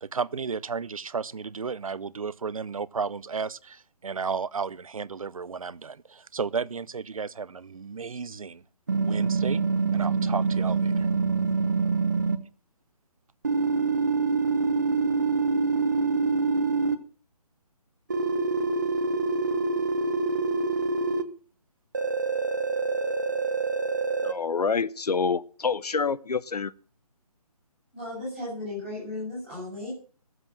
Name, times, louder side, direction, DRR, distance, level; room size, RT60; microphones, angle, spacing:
voice 1, 0.0-8.6 9.0-9.6 9.9-11.1, right 5 dB, 60° right, 0.6 m, -33 dB
sound 1, 8.9-12.4 13.4-17.0 18.1-21.2 21.9-24.3, right 4 dB, 30° right, 0.9 m, -25 dB
voice 2, 24.2-26.7, left 5 dB, 85° left, 0.9 m, -27 dB
voice 3, 27.9-29.9, left 2 dB, ahead, 7.1 m, -35 dB
14.5 x 7.9 x 7.2 m
hypercardioid pair, 180°, 20 cm